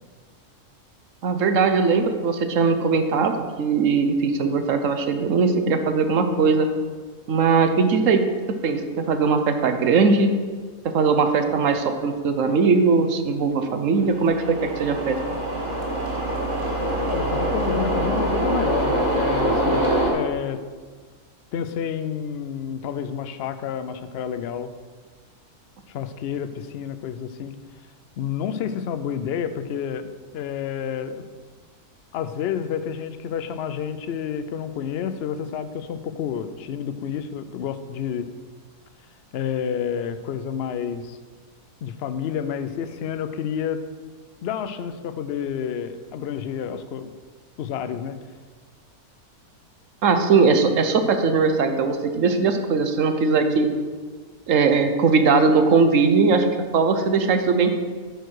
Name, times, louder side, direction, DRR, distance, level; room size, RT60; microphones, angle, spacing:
voice 1, 1.2-6.7 7.3-8.3 8.6-10.3 10.8-15.2 50.0-53.7 54.5-56.5 56.7-57.8, right 4 dB, 60° right, 7 dB, 1.1 m, -20 dB
sound 1, 14.0-20.1, right 1 dB, 20° right, 1.7 m, -24 dB
voice 2, 17.1-20.7 21.5-24.7 25.9-27.5 28.2-31.2 32.1-38.3 39.3-41.2 41.8-43.8 44.4-47.1 47.6-48.2, left 8 dB, 75° left, 11 dB, 0.5 m, -29 dB
9.3 x 4.6 x 6.4 m, 1.5 s
omnidirectional pair, 1.6 m